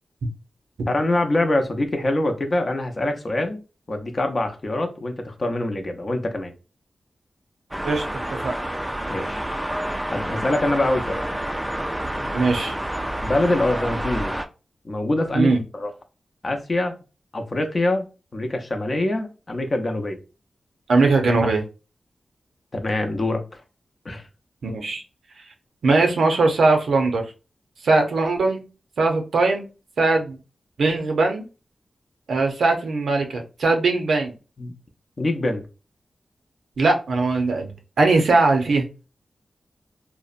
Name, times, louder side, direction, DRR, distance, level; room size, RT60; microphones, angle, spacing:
voice 1, 0.9-3.6 3.9-6.5 9.1-9.4 10.1-11.2 13.2-14.3 14.8-15.5 15.7-15.9 16.4-16.9 17.3-20.2 22.7-23.4 24.0-24.2 34.6-34.7 35.2-35.6, left 1 dB, 45° left, 0.5 m, -24 dB
sound 1, 7.7-14.5, right 1 dB, 10° right, 0.3 m, -28 dB
voice 2, 12.3-12.7 15.3-15.6 20.9-21.6 24.6-25.0 25.8-27.3 27.8-28.6 29.0-29.7 30.0-30.4 30.8-31.4 32.3-34.3 36.8-38.9, right 3 dB, 90° right, 0.5 m, -20 dB
2.6 x 2.1 x 2.4 m
cardioid pair, 65°, 0 cm